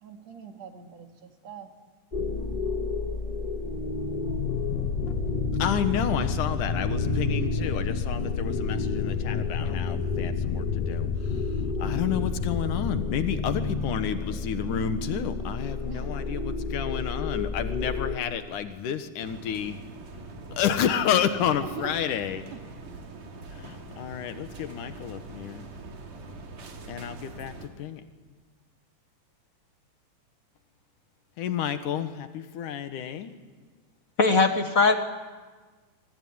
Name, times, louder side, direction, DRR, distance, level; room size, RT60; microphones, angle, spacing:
voice 1, 0.0-1.7 15.9-16.1 21.6-21.9, right 6 dB, 60° right, 5 dB, 3.2 m, -42 dB
sound 1, 2.1-18.2, left 3 dB, 15° left, 1.5 m, -32 dB
sound 2, 4.3-13.1, left 7 dB, 70° left, 2.4 m, -31 dB
voice 2, 5.6-11.4 11.8-19.8 20.5-22.5 23.5-25.7 26.9-28.0 31.4-33.3, left 9 dB, 90° left, 9 dB, 2.9 m, -30 dB
sound 3, 19.2-27.7, right 3 dB, 90° right, 4.3 m, -43 dB
voice 3, 34.2-34.9, left 3 dB, 45° left, 7 dB, 1.1 m, -20 dB
26.0 x 24.0 x 9.6 m, 1.4 s
omnidirectional pair, 3.5 m